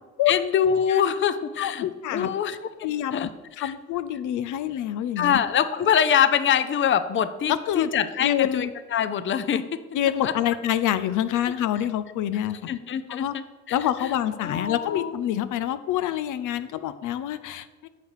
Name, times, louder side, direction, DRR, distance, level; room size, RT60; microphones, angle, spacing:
voice 1, 0.3-2.6 3.1-3.3 3.6-3.7 5.2-9.8 10.2-10.3 12.7-14.1 14.4-15.1, left 8 dB, 40° left, 13 dB, 0.6 m, -24 dB
voice 2, 1.6-2.3 2.8-3.3 3.6-5.4 7.5-7.9 8.2-8.7 9.9-12.6 13.1-13.3 13.7-17.9, left 11 dB, 85° left, 13 dB, 0.6 m, -26 dB
10.0 x 6.7 x 4.8 m, 1.3 s
cardioid pair, 90°, 30 cm